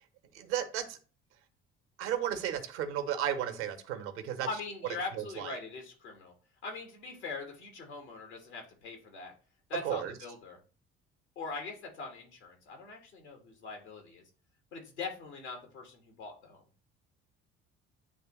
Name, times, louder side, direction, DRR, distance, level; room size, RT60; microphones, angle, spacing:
voice 1, 0.3-1.0 2.0-4.5 5.1-5.6 9.8-10.1, right 10 dB, 80° right, 8 dB, 0.9 m, -34 dB
voice 2, 4.4-6.3 6.6-9.3 9.7-10.6 11.3-14.2 14.7-16.6, left 4 dB, 85° left, 3 dB, 1.6 m, -42 dB
9.3 x 3.3 x 3.0 m, 0.37 s
hypercardioid pair, 50°, 33 cm